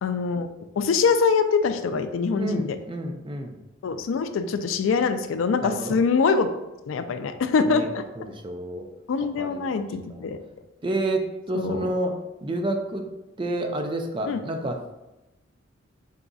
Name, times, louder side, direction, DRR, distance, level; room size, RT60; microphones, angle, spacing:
voice 1, 0.0-0.5 0.8-2.8 3.8-6.5 6.9-8.0 9.1-10.4 11.5-11.8 14.3-14.4, left 5 dB, 90° left, 9 dB, 0.4 m, -24 dB
voice 2, 2.3-3.6 5.6-6.0 7.7-7.9 8.2-8.9 9.4-10.3 10.8-12.2 12.4-13.1 13.4-14.8, right 1 dB, 25° right, 4 dB, 0.4 m, -29 dB
4.0 x 3.8 x 2.3 m, 0.98 s
head